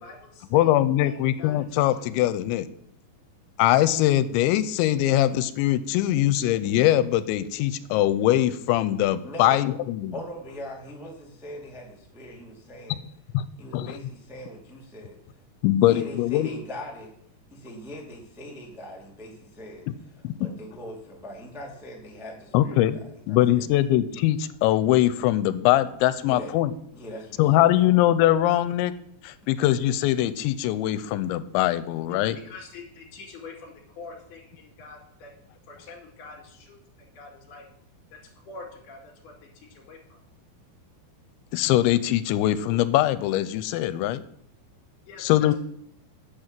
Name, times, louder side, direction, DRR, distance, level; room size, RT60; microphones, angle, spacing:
voice 1, 0.0-0.7 1.0-2.1 32.4-35.3 35.7-37.7 38.1-38.2 38.5-40.2 45.1-45.5, left 3 dB, 65° left, 2 dB, 4.0 m, -45 dB
voice 2, 0.5-2.7 3.6-10.1 13.3-13.4 13.7-14.0 15.6-16.5 20.2-20.5 22.5-23.0 23.3-26.7 27.4-28.9 29.2-32.4 41.5-44.2 45.2-45.5, left 13 dB, 90° left, 14 dB, 2.9 m, -22 dB
voice 3, 9.2-9.7 10.1-13.0 13.6-15.2 15.8-17.1 17.5-22.7 23.3-23.6 26.2-26.5 26.9-27.6, left 1 dB, ahead, -2 dB, 0.8 m, -41 dB
8.9 x 8.3 x 7.4 m, 0.70 s
omnidirectional pair, 5.2 m